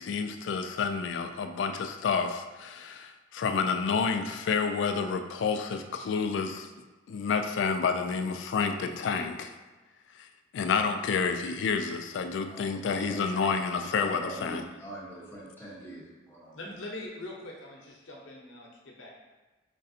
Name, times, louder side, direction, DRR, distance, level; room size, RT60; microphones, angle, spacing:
voice 1, 0.0-6.7 7.1-9.5 10.2-10.3 10.5-14.6, left 5 dB, 70° left, 7 dB, 0.3 m, -29 dB
voice 2, 12.5-16.6, right 1 dB, 10° left, -8 dB, 1.1 m, -43 dB
voice 3, 16.5-19.1, left 1 dB, 90° left, -2 dB, 0.8 m, -42 dB
5.2 x 2.4 x 2.7 m, 1.2 s
head